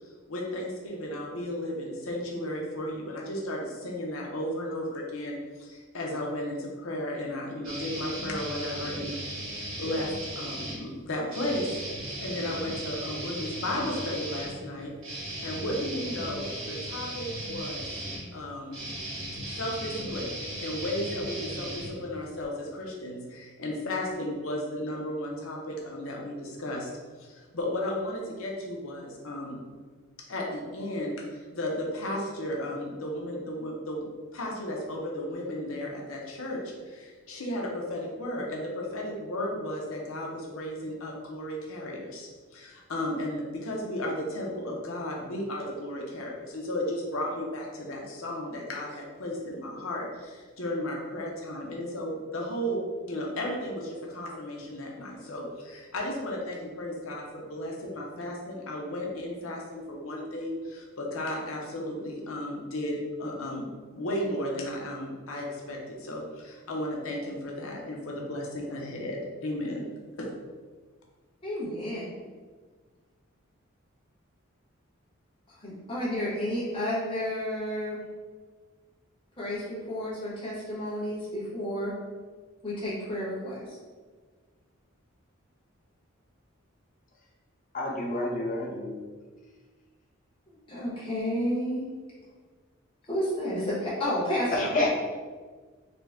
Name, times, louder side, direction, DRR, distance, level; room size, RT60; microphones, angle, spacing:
voice 1, 0.3-11.8 12.2-17.9 18.3-18.8 19.6-20.3 20.6-26.9 27.2-29.6 30.3-34.0 34.3-69.8 70.2-70.3, left 1 dB, 90° left, -1 dB, 0.8 m, -34 dB
sound 1, 7.6-10.8 11.3-22.4, right 1 dB, 85° right, 1.1 m, -37 dB
voice 2, 71.4-72.1 75.5-78.0 79.4-81.9 82.6-83.8 90.5-91.8 93.0-94.7, equal, 25° left, -9 dB, 1.3 m, -31 dB
voice 3, 87.7-89.1 94.5-94.9, left 2 dB, 40° left, -2 dB, 0.7 m, -29 dB
3.8 x 2.2 x 3.5 m, 1.4 s
head